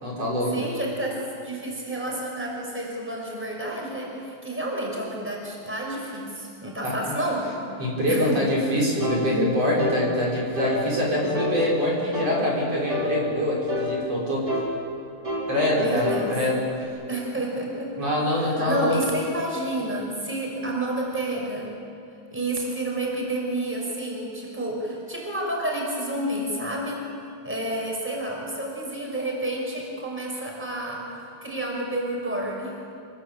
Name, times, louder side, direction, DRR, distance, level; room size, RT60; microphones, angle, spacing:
voice 1, 0.0-0.7 6.8-6.9 7.8-14.5 15.5-16.6 18.0-19.0, left 1 dB, 55° right, -4 dB, 6.7 m, -24 dB
voice 2, 0.5-7.5 8.1-8.4 15.8-16.3 17.1-17.9 18.4-21.7 22.3-27.0 27.4-32.8, right 1 dB, 5° right, -2 dB, 6.1 m, -30 dB
sound 1, 9.0-9.2 9.8-10.0 10.5-10.8 11.3-11.6 12.1-12.4 12.9-13.1 13.7-13.9 14.5-14.7 15.2-15.5 16.0-16.3 16.8-16.9, left 1 dB, 30° right, 5.5 m, -28 dB
26.5 x 22.5 x 8.8 m, 2.7 s
omnidirectional pair, 3.4 m